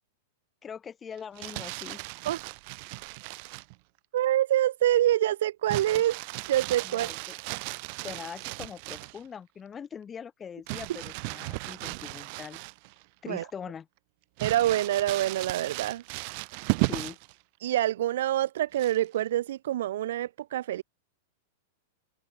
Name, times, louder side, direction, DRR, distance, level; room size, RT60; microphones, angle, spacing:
voice 1, 0.6-2.0 6.8-7.4 8.0-12.6 13.2-13.9 16.8-17.2, left 7 dB, 15° left, 1.0 m, -42 dB
Crumpling crinkling, 1.2-3.7 5.7-9.2 10.7-13.0 13.4-13.5 14.4-17.3 18.7-19.2, right 33 dB, 40° right, 1.0 m, -35 dB
voice 2, 4.1-6.2 6.5-7.1 13.3-13.4 14.4-16.0 17.6-20.8, right 13 dB, 65° right, 0.5 m, -26 dB
supercardioid pair, 165°, 0 cm